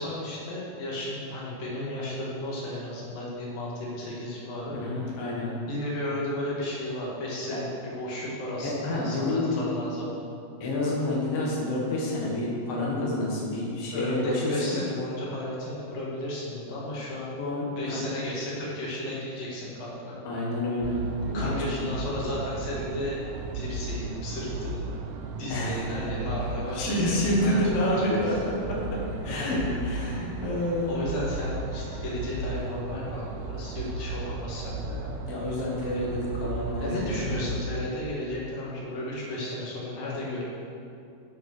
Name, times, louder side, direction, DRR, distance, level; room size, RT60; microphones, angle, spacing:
voice 1, 0.0-4.8 5.7-10.2 13.9-17.3 17.8-20.1 21.3-23.2 23.5-24.9 25.4-28.4 29.2-29.7 30.9-35.1 36.8-40.4, left 1 dB, 70° left, -5 dB, 3.7 m, -34 dB
voice 2, 4.7-5.5 7.5-7.6 8.6-9.7 10.6-14.8 17.4-17.6 17.9-18.0 20.2-21.0 21.3-21.9 25.5-25.8 26.7-28.4 28.7-31.1 35.2-37.4, left 1 dB, 50° left, -4 dB, 2.2 m, -28 dB
sound 1, 20.8-37.6, right 3 dB, 80° right, 2.1 m, -35 dB
7.9 x 7.4 x 6.5 m, 2.5 s
omnidirectional pair, 4.1 m